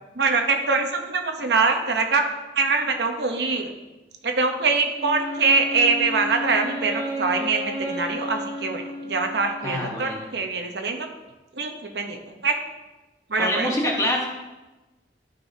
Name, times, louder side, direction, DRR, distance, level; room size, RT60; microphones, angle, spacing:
voice 1, 0.1-3.7 4.2-11.1 11.5-12.6 13.3-13.7, right 4 dB, 75° right, 4 dB, 0.9 m, -24 dB
Wind instrument woodwind instrument, 5.0-9.8, equal, 30° right, 1.3 m, -32 dB
voice 2, 9.6-10.3 13.4-14.3, left 1 dB, 15° left, -1 dB, 1.1 m, -25 dB
13.0 x 5.4 x 2.8 m, 1.1 s
head